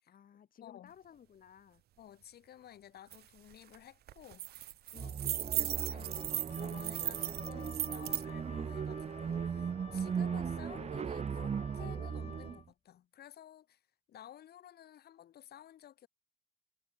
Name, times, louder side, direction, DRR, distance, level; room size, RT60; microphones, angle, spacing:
voice 1, 0.1-1.8 4.9-5.2, left 9 dB, 60° left, 7.9 m, -57 dB
voice 2, 0.6-0.9 2.0-4.7 5.0-13.8 14.1-16.1, left 11 dB, 80° left, 7.0 m, -54 dB
sound 1, 3.1-3.2 3.5-3.8 4.1-8.2, right 13 dB, 85° right, 0.8 m, -37 dB
sound 2, 5.0-12.6, right 7 dB, 40° right, 1.2 m, -38 dB
Wind instrument woodwind instrument, 6.0-12.7, left 6 dB, 40° left, 2.2 m, -54 dB
cardioid pair, 120°, 16 cm